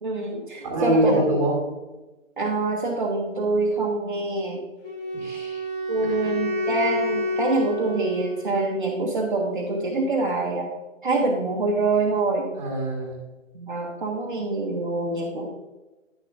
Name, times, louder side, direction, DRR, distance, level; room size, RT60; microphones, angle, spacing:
voice 1, 0.0-1.2 2.4-4.6 5.9-10.7 11.0-12.5 13.5-15.5, right 3 dB, 40° right, -1 dB, 0.9 m, -25 dB
voice 2, 0.6-1.6 5.2-5.6 6.0-6.2 12.6-13.2, right 1 dB, 15° right, -1 dB, 1.5 m, -24 dB
Wind instrument woodwind instrument, 4.8-8.9, left 1 dB, 45° left, 2.4 m, -29 dB
9.8 x 6.7 x 2.5 m, 1.1 s
figure-of-eight pair, 160°, 39 cm